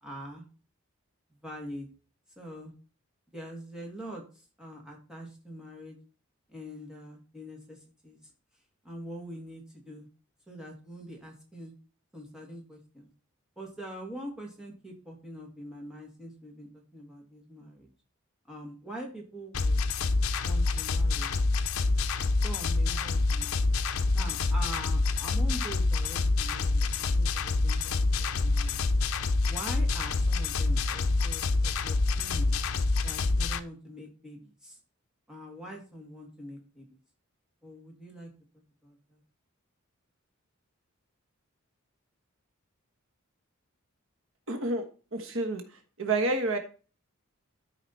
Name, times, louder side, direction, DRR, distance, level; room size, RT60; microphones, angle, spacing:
voice 1, 0.0-0.4 1.4-1.9 2.4-2.7 3.3-6.0 6.5-8.2 8.8-10.1 10.5-11.7 12.1-13.1 13.6-17.9 18.5-19.8 20.4-21.4 22.4-23.7 24.1-28.8 29.4-32.6 33.0-34.8 35.3-37.0 37.6-38.3 38.8-39.2, equal, 5° right, -2 dB, 2.3 m, -44 dB
sound 1, 19.5-33.6, left 3 dB, 75° left, 0.6 m, -27 dB
voice 2, 44.5-44.8 45.1-46.6, right 2 dB, 65° right, 6 dB, 1.3 m, -29 dB
12.5 x 5.0 x 4.2 m, 0.37 s
head